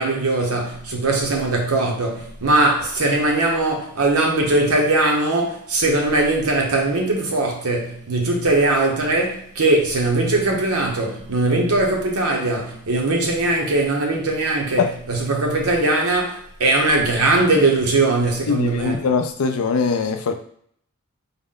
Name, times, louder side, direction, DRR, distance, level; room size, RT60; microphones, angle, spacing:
voice 1, 0.0-14.8 15.1-19.0, right 2 dB, 80° right, 0.9 m, -20 dB
voice 2, 18.5-20.3, left 5 dB, 80° left, 0.5 m, -21 dB
3.9 x 2.1 x 3.7 m
head